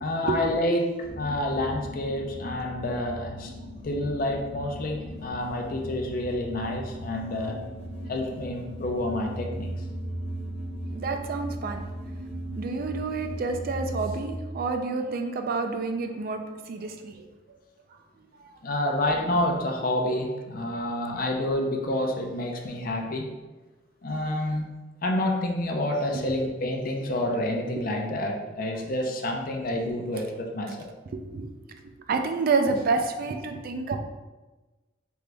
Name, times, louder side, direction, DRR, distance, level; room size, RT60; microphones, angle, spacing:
voice 1, 0.0-3.5 3.8-7.6 8.1-9.7 18.6-23.3 24.0-24.7 25.0-30.9, left 1 dB, 50° left, 2 dB, 0.5 m, -28 dB
sound 1, 1.0-14.4, right 1 dB, 30° left, 0.9 m, -37 dB
voice 2, 10.9-11.8 12.6-16.4 16.7-17.2 18.4-18.5 31.1-31.5 32.1-34.0, right 4 dB, 50° right, 6 dB, 0.4 m, -28 dB
3.8 x 3.5 x 3.3 m, 1.2 s
head